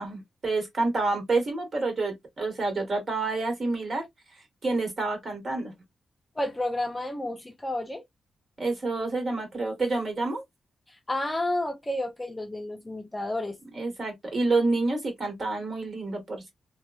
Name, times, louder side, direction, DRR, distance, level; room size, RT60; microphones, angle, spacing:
voice 1, 0.0-4.1 4.6-5.7 8.6-10.4 13.7-16.5, right 3 dB, 45° right, 1.5 m, -28 dB
voice 2, 6.4-8.0 11.1-13.6, left 1 dB, 15° left, 0.6 m, -30 dB
2.9 x 2.2 x 2.3 m
wide cardioid pair, 120°, 0 cm